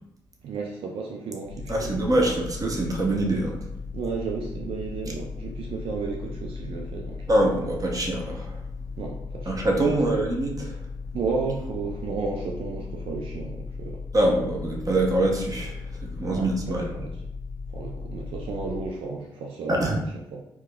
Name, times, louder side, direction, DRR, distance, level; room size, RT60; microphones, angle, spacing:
voice 1, 0.4-2.0 3.9-7.3 9.0-10.2 11.1-14.0 16.3-17.1 17.7-20.0 20.3-20.4, right 4 dB, 60° right, 0 dB, 0.5 m, -33 dB
sound 1, 1.5-18.9, left 4 dB, 60° left, 0.7 m, -37 dB
voice 2, 1.7-3.6 7.3-8.6 9.5-10.8 14.1-16.9 19.7-20.0, right 1 dB, 30° right, 0 dB, 0.9 m, -24 dB
4.6 x 2.2 x 2.3 m, 0.81 s
hypercardioid pair, 40°, 11 cm